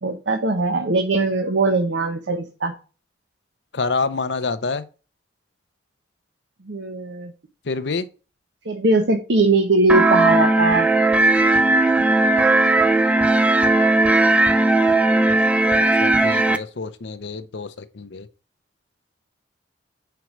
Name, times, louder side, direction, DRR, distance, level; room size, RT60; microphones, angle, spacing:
voice 1, 0.0-2.7 6.6-7.3 8.7-10.9, right 2 dB, 80° right, 0.9 m, -20 dB
voice 2, 3.7-4.8 7.6-8.1 15.7-18.3, left 4 dB, 70° left, 0.7 m, -27 dB
sound 1, 9.9-16.6, right 2 dB, 5° right, 0.4 m, -17 dB
5.2 x 4.7 x 5.9 m
head